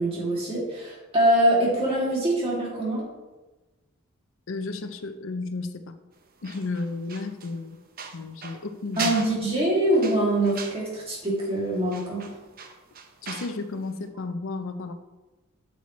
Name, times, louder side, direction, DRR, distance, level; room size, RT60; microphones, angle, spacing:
voice 1, 0.0-3.0 9.0-12.2, right 1 dB, 30° right, -5 dB, 2.6 m, -24 dB
voice 2, 4.5-5.9 6.4-7.8 8.1-9.1 13.2-14.9, left 3 dB, 65° left, 9 dB, 0.6 m, -33 dB
sound 1, 6.4-13.6 13.9-14.1, right 5 dB, 45° right, 0.8 m, -39 dB
8.3 x 7.1 x 3.2 m, 1.1 s
head